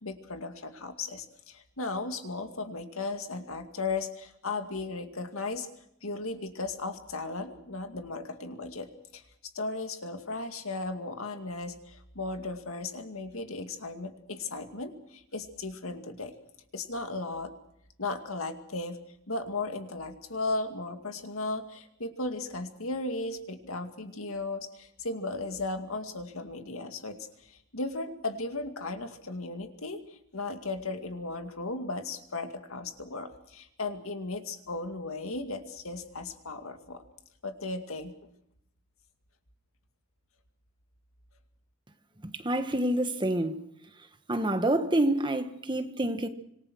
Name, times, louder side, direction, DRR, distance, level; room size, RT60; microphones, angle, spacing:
voice 1, 0.0-5.7 6.0-16.3 16.7-17.5 18.0-19.0 19.3-37.0 37.4-38.1, left 3 dB, 75° left, 2.3 m, -36 dB
voice 2, 42.2-43.6 44.3-46.3, right 1 dB, 20° right, 1.5 m, -27 dB
26.0 x 19.5 x 6.4 m
head